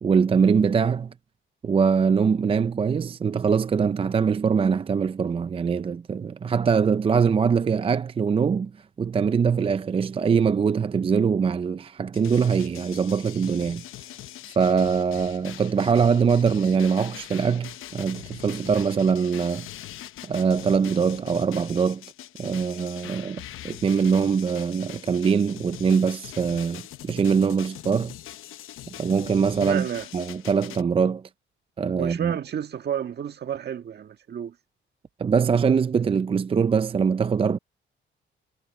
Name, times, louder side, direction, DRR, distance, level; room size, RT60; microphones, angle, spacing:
voice 1, 0.0-1.1 1.6-8.7 9.0-13.8 14.6-19.7 20.2-22.0 22.4-28.1 29.0-29.9 30.1-31.2 31.8-32.4 35.2-37.6, right 6 dB, 25° right, 0.4 m, -23 dB
sound 1, 12.1-30.8, left 13 dB, 80° left, 1.0 m, -42 dB
voice 2, 29.6-30.1 32.0-34.5, right 9 dB, 55° right, 1.6 m, -30 dB
cardioid pair, 110°, 21 cm